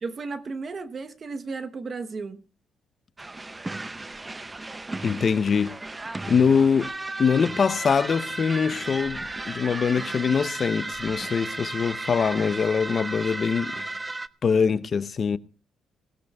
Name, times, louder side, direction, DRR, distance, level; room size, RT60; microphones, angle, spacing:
voice 1, 0.0-2.4, right 4 dB, 40° right, 1.0 m, -34 dB
sound 1, 3.2-14.3, right 2 dB, 20° right, 0.6 m, -34 dB
voice 2, 5.0-5.8 6.3-6.9 7.2-13.8 14.4-15.4, left 6 dB, 45° left, 0.7 m, -23 dB
21.0 x 16.5 x 2.3 m
cardioid pair, 90°, 0 cm